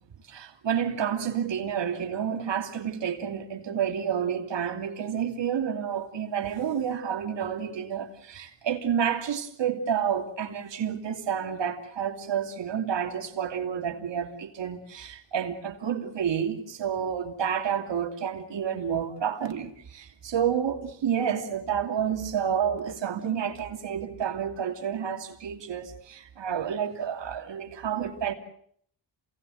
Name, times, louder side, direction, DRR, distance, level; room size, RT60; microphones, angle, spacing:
voice 1, 0.3-28.3, right 8 dB, 75° right, 2.9 m, -30 dB
28.0 x 18.5 x 7.9 m
cardioid pair, 75°, 43 cm